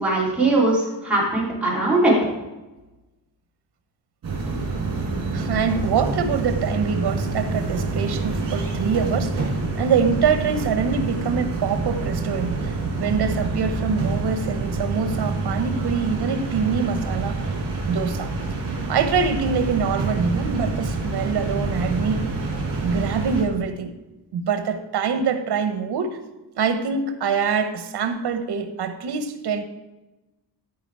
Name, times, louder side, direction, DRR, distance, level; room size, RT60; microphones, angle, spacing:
voice 1, 0.0-2.2, right 2 dB, 5° right, -7 dB, 3.4 m, -20 dB
sound 1, 4.2-23.4, right 3 dB, 55° right, 3.2 m, -27 dB
voice 2, 5.3-12.7 13.0-17.4 17.9-18.3 18.9-22.3 22.8-23.9 24.3-26.2 26.6-29.6, right 6 dB, 75° right, 8 dB, 1.2 m, -24 dB
14.0 x 4.9 x 4.8 m, 1.0 s
wide cardioid pair, 165°, 40 cm